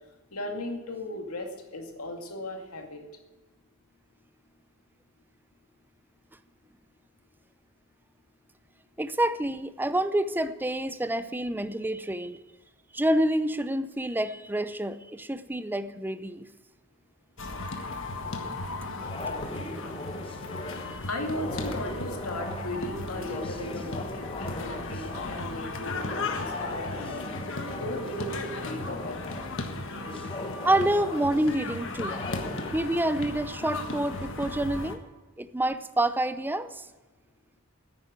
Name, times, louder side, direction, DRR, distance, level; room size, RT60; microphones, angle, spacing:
voice 1, 0.3-3.0 21.1-27.3 27.7-29.4, left 1 dB, 85° left, 3 dB, 2.3 m, -37 dB
voice 2, 9.0-12.4 12.9-16.5 20.8-20.9 30.6-32.2 32.7-35.0 35.4-36.8, right 1 dB, 10° right, 12 dB, 0.6 m, -28 dB
sound 1, 17.4-35.0, left 2 dB, 60° left, 1.5 m, -36 dB
sound 2, 18.2-32.7, left 2 dB, 25° left, 1.1 m, -40 dB
10.5 x 9.3 x 9.6 m, 1.2 s
head